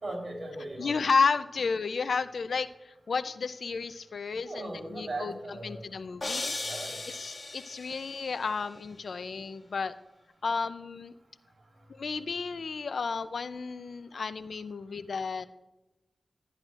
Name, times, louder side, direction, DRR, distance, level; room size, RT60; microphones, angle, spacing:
voice 1, 0.0-1.0 4.4-5.8 6.6-7.0, right 2 dB, 60° right, -2 dB, 3.4 m, -38 dB
voice 2, 0.8-6.6 7.1-9.9 10.4-11.1 11.9-15.5, left 4 dB, 80° left, 13 dB, 0.4 m, -32 dB
sound 1, 6.2-8.3, left 2 dB, 45° left, 1.9 m, -36 dB
12.5 x 10.5 x 2.4 m, 1.0 s
wide cardioid pair, 75°, 0 cm